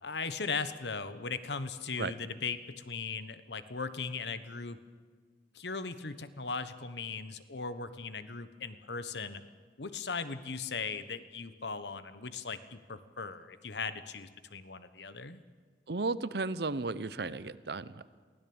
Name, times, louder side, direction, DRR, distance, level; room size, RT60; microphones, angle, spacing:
voice 1, 0.0-4.8 5.5-9.4 9.8-15.4, left 4 dB, 75° left, 12 dB, 1.2 m, -38 dB
voice 2, 15.9-18.0, right 3 dB, 65° right, 16 dB, 0.8 m, -34 dB
23.5 x 16.0 x 8.8 m, 1.5 s
head